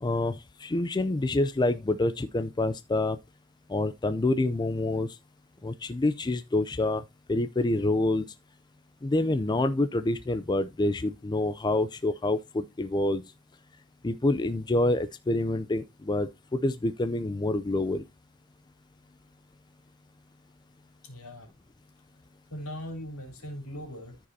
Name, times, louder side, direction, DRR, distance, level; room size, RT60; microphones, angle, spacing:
voice 1, 0.0-3.2 3.7-5.2 5.6-7.0 7.3-8.3 9.0-13.2 14.0-18.0, left 2 dB, 20° left, 0.4 m, -27 dB
voice 2, 21.0-21.5 22.5-24.2, equal, 70° left, 3.3 m, -40 dB
14.0 x 5.1 x 2.7 m
head